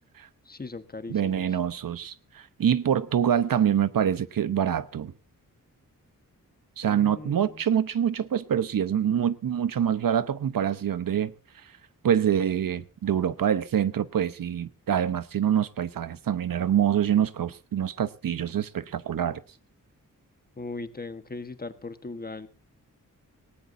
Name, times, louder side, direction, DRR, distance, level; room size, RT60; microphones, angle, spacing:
voice 1, 0.4-1.4 6.8-7.6 20.6-22.5, left 3 dB, 25° left, 1.4 m, -38 dB
voice 2, 1.1-5.1 6.8-11.3 12.0-19.4, right 9 dB, 80° right, 1.0 m, -25 dB
19.0 x 18.5 x 2.7 m
wide cardioid pair, 125°, 33 cm